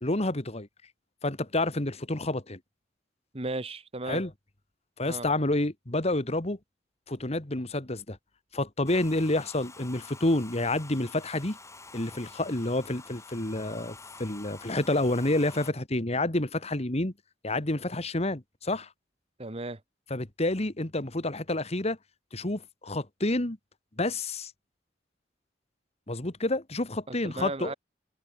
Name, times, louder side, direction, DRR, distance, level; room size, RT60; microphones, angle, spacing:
voice 1, 0.0-0.7 1.2-2.6 4.1-4.3 5.0-6.6 7.1-8.2 8.5-11.6 11.9-17.1 17.4-18.9 20.1-22.0 22.3-23.6 24.0-24.5 26.1-27.7, left 2 dB, 35° left, 1.9 m, -29 dB
voice 2, 3.3-4.2 5.0-5.3 19.4-19.8 27.1-27.7, right 2 dB, 35° right, 1.7 m, -35 dB
Domestic sounds home sounds, 8.9-15.7, left 3 dB, 15° left, 5.9 m, -48 dB
head